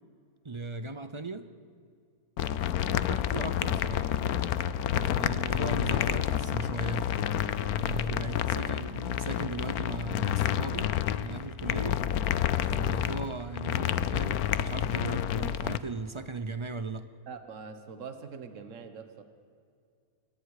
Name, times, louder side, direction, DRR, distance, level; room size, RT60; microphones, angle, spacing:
voice 1, 0.4-1.5 2.9-4.1 4.9-7.1 7.7-12.1 12.6-17.1, right 3 dB, 35° right, 11 dB, 0.5 m, -38 dB
sound 1, 2.4-15.8, left 10 dB, 80° left, 1.2 m, -29 dB
voice 2, 17.3-19.2, right 5 dB, 55° right, 8 dB, 1.6 m, -43 dB
28.0 x 22.0 x 4.9 m, 2.3 s
omnidirectional pair, 1.6 m